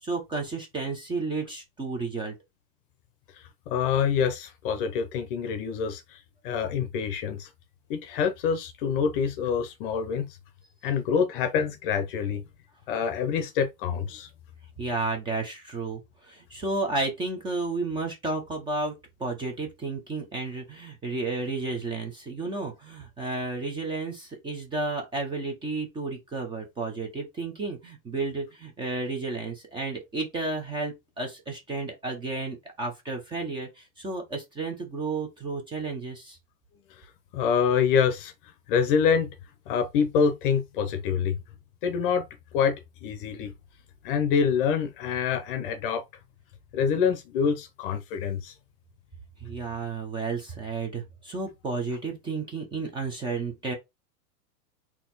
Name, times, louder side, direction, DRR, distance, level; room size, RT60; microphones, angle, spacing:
voice 1, 0.0-2.3 14.8-18.9 19.2-36.4 49.4-53.7, right 3 dB, 10° right, 0.8 m, -32 dB
voice 2, 3.7-6.2 6.4-7.5 7.9-10.3 10.8-12.4 12.9-14.3 37.3-38.3 38.7-39.3 39.7-41.4 41.8-42.3 42.5-42.8 43.0-43.5 44.0-46.0 46.7-48.5, left 6 dB, 35° left, 0.8 m, -26 dB
4.2 x 2.9 x 4.0 m
supercardioid pair, 155°, 46 cm